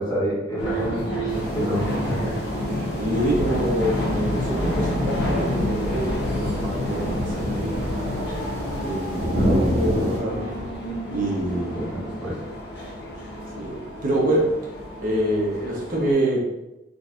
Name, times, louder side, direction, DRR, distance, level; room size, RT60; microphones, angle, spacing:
voice 1, 0.0-2.3 11.7-12.4, equal, 20° left, -7 dB, 1.2 m, -28 dB
sound 1, 0.6-16.1, left 1 dB, 65° left, 0.8 m, -29 dB
sound 2, 1.3-10.2, equal, 30° right, 1.1 m, -30 dB
sound 3, 1.5-9.0, equal, 5° left, 0.9 m, -38 dB
voice 2, 2.7-7.9 8.8-10.4 11.1-11.8 13.5-14.4 15.0-16.4, right 1 dB, 50° right, -4 dB, 0.9 m, -26 dB
3.9 x 2.6 x 2.4 m, 0.96 s
head